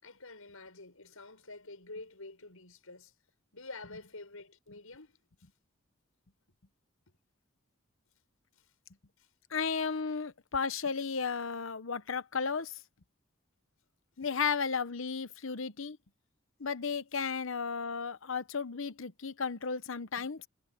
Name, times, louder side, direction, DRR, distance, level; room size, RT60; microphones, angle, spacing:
voice 1, 0.0-3.1 3.5-5.2 8.5-8.7 9.2-9.3, left 3 dB, 85° left, 6.9 m, -48 dB
voice 2, 9.5-12.8 14.2-16.0 16.6-20.5, left 5 dB, 65° left, 0.9 m, -34 dB
head